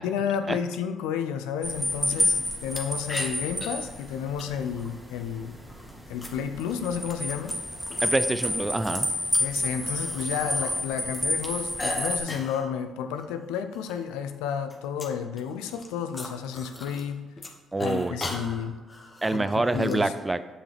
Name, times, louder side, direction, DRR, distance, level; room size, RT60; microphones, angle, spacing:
voice 1, 0.0-5.5 6.1-7.5 9.4-17.2 17.8-18.8 19.3-20.1, left 7 dB, 80° left, 9 dB, 0.4 m, -31 dB
sound 1, 1.6-12.2, left 1 dB, ahead, 1.7 m, -29 dB
sound 2, 2.7-2.8 3.1-3.7 4.4-4.9 5.7-8.1 8.4-10.7 11.0-12.7 13.1-13.2 13.5-14.0 14.3-17.1 17.4-20.0, left 2 dB, 30° left, 1.2 m, -39 dB
voice 2, 8.0-9.1 17.7-18.2 19.2-20.4, right 2 dB, 20° right, 12 dB, 0.4 m, -26 dB
7.2 x 5.5 x 3.4 m, 1.2 s
hypercardioid pair, 50°, 0 cm